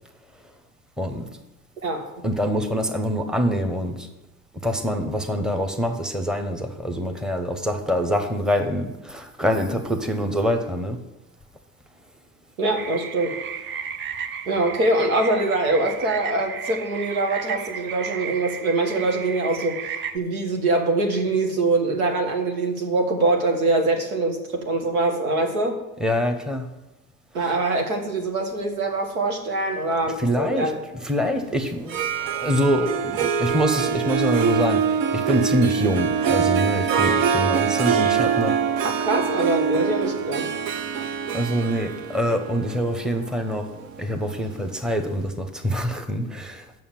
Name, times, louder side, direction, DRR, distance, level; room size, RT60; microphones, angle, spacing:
voice 1, 2.2-4.1 4.6-11.0 26.0-26.7 27.4-27.5 30.2-38.6 41.3-43.7 44.0-46.7, equal, ahead, 6 dB, 1.1 m, -25 dB
voice 2, 12.6-13.3 14.5-19.8 20.1-25.8 27.3-30.8 38.8-40.5, right 2 dB, 80° right, 3 dB, 1.8 m, -23 dB
sound 1, 12.8-20.2, right 7 dB, 30° right, 0.5 m, -34 dB
Harp, 31.8-44.7, right 7 dB, 55° right, 0.9 m, -24 dB
7.1 x 6.3 x 7.5 m, 0.98 s
hypercardioid pair, 75°, 42 cm